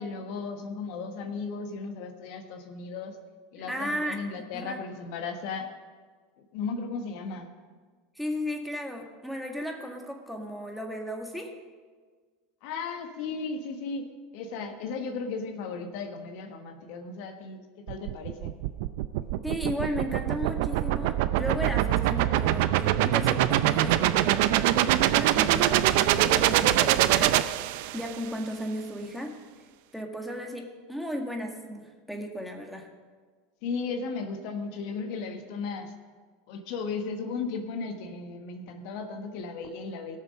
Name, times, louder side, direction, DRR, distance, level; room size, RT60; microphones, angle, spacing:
voice 1, 0.0-3.2 3.5-5.7 6.5-7.5 12.6-18.5 33.6-35.9 36.5-40.2, left 4 dB, 65° left, 6 dB, 1.2 m, -35 dB
voice 2, 3.6-4.8 8.2-11.5 19.4-29.4 29.9-32.9, equal, ahead, 2 dB, 1.8 m, -35 dB
sound 1, 17.9-28.2, right 13 dB, 65° right, 0.5 m, -24 dB
18.0 x 6.7 x 5.2 m, 1.5 s
hypercardioid pair, 95°, 0 cm